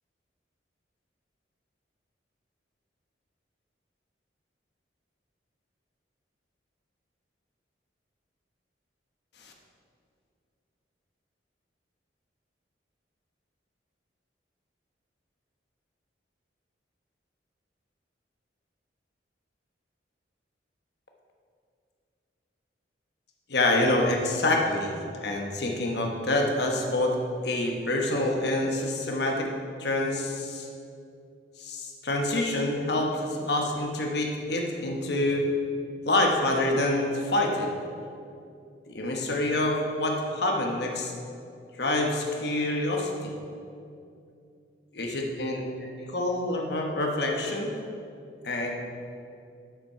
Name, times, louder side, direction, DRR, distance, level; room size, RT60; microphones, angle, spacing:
voice 1, 23.5-27.2 27.4-29.5 29.8-30.7 31.6-35.4 36.1-37.7 38.9-41.1 41.8-43.3 44.9-47.7 48.4-48.7, left 1 dB, 60° left, 1 dB, 1.1 m, -27 dB
7.4 x 5.9 x 5.6 m, 2.5 s
head